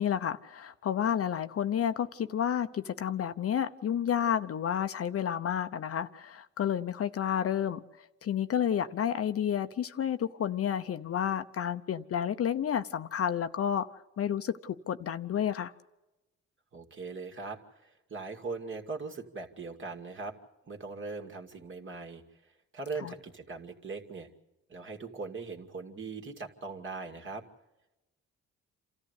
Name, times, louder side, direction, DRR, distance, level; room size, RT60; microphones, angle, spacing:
voice 1, 0.0-7.8 8.2-13.9 14.2-15.7 23.0-23.1, left 9 dB, 50° left, 0.8 m, -30 dB
voice 2, 16.7-20.3 20.7-22.2 22.7-24.3 24.7-27.5, right 4 dB, 40° right, 2.4 m, -40 dB
27.5 x 14.0 x 8.3 m
cardioid pair, 90°, 30 cm